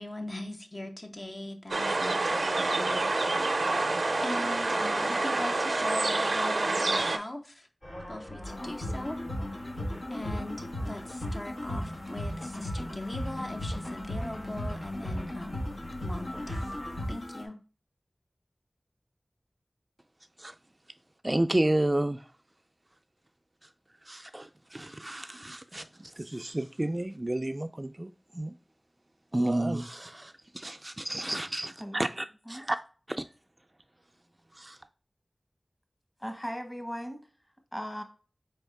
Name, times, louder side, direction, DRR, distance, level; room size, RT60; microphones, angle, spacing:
voice 1, 0.0-3.2 4.2-7.7 8.1-9.2 10.1-15.7 16.0-16.7 17.1-17.6, left 1 dB, 45° left, 0.7 m, -40 dB
sound 1, 1.7-7.2, right 2 dB, 85° right, 0.5 m, -27 dB
sound 2, 7.8-17.1, left 1 dB, 60° left, 2.5 m, -45 dB
sound 3, 8.4-17.4, left 1 dB, 80° left, 1.2 m, -36 dB
voice 2, 21.2-22.2 24.1-28.5 29.3-32.8 33.1-33.2 34.6-34.8, right 1 dB, 35° right, 0.3 m, -31 dB
voice 3, 36.2-37.3 37.7-38.0, equal, 15° left, 1.1 m, -37 dB
4.4 x 3.5 x 3.2 m
wide cardioid pair, 40°, 0 cm